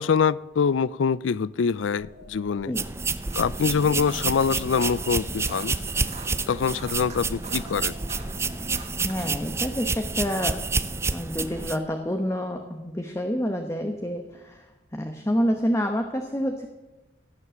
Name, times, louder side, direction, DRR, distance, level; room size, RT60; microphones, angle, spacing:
voice 1, 0.0-2.7 3.3-5.8 6.5-7.9, left 6 dB, 80° left, 0.4 m, -24 dB
sound 1, 1.6-9.2, equal, 70° right, 4.3 m, -48 dB
sound 2, 2.8-11.8, right 4 dB, 15° right, 0.5 m, -29 dB
sound 3, 3.2-9.4, right 5 dB, 35° right, 1.6 m, -45 dB
voice 2, 8.6-10.6 11.1-14.7 14.9-16.7, equal, 15° left, 0.9 m, -28 dB
16.5 x 9.7 x 7.5 m
head